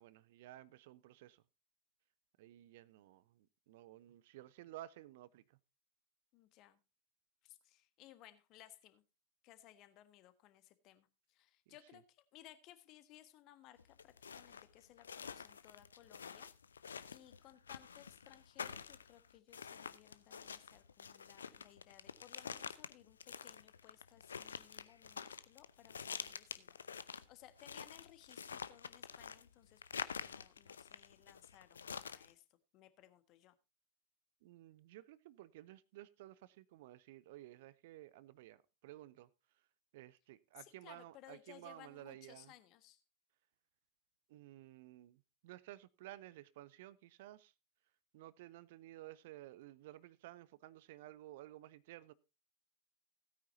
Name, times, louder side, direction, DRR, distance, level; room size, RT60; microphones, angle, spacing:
voice 1, 0.0-1.4 2.4-5.4 11.7-11.8 34.4-39.3 39.9-42.5 44.3-47.5 48.1-52.1, right 15 dB, 50° right, 0.6 m, -55 dB
voice 2, 6.3-6.8 7.4-9.0 9.4-16.5 17.1-26.8 27.1-32.4 32.7-33.6 40.5-43.0, left 14 dB, 40° left, 1.4 m, -61 dB
sound 1, 13.8-32.3, left 6 dB, 70° left, 0.7 m, -48 dB
16.5 x 9.4 x 2.7 m
figure-of-eight pair, 90°, 0 cm